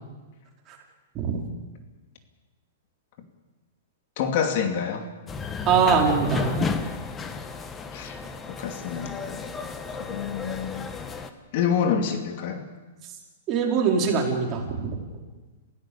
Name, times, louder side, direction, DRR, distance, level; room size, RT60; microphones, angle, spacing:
voice 1, 4.2-5.1 7.9-8.2 8.5-9.4 10.0-10.9 11.5-12.6, left 7 dB, 50° left, 5 dB, 2.6 m, -27 dB
sound 1, 5.3-11.3, left 5 dB, 15° left, 1.5 m, -32 dB
voice 2, 5.6-6.7 13.5-14.8, right 6 dB, 30° right, -1 dB, 4.8 m, -22 dB
27.0 x 16.5 x 7.2 m, 1.2 s
hypercardioid pair, 145°, 0 cm